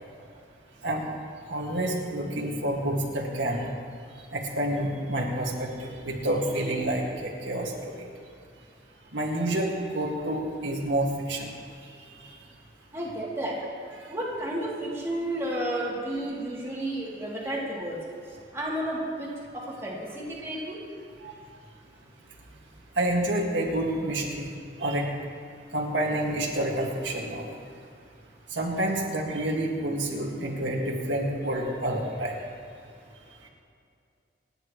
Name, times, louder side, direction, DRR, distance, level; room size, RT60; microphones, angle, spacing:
voice 1, 1.5-3.6 4.3-8.1 9.1-11.5 12.2-12.4 21.2-21.3 23.0-24.5 24.8-25.1 25.7-27.5 28.5-32.3, right 1 dB, 80° right, -2 dB, 2.1 m, -28 dB
voice 2, 12.9-13.5 14.1-18.0 18.5-19.3 19.5-20.8, right 1 dB, 15° right, -6 dB, 2.9 m, -32 dB
28.0 x 10.5 x 3.2 m, 2.3 s
head